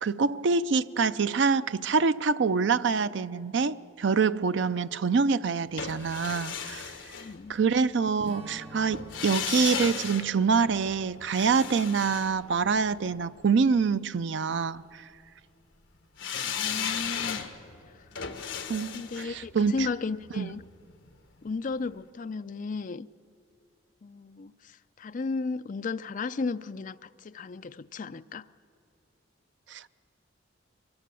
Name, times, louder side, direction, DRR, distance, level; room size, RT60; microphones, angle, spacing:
voice 1, 0.0-6.9 7.5-15.0 18.7-19.9 20.4-20.5 29.7-29.9, right 5 dB, 60° right, 0.4 m, -26 dB
sound 1, 5.8-7.9 8.9-13.2 16.2-21.2 21.5-21.6, left 7 dB, 65° left, 1.3 m, -36 dB
voice 2, 7.1-7.6 16.4-17.5 18.9-20.6 21.4-23.1 24.0-28.5, left 4 dB, 40° left, 0.4 m, -34 dB
Strum, 8.2-12.9, right 2 dB, 30° right, 1.6 m, -50 dB
23.0 x 20.0 x 6.9 m
head